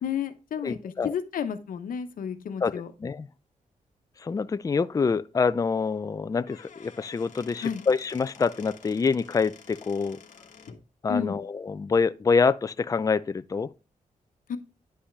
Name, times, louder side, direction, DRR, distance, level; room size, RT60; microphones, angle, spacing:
voice 1, 0.0-2.9 7.6-7.8 11.1-11.4 14.5-14.6, left 7 dB, 90° left, 1.0 m, -31 dB
voice 2, 0.6-1.1 2.6-3.3 4.2-10.2 11.0-13.7, left 5 dB, 25° left, 0.4 m, -26 dB
Squeak / Wood, 6.3-10.9, left 6 dB, 65° left, 1.3 m, -50 dB
9.9 x 5.6 x 3.3 m
wide cardioid pair, 105°, 14 cm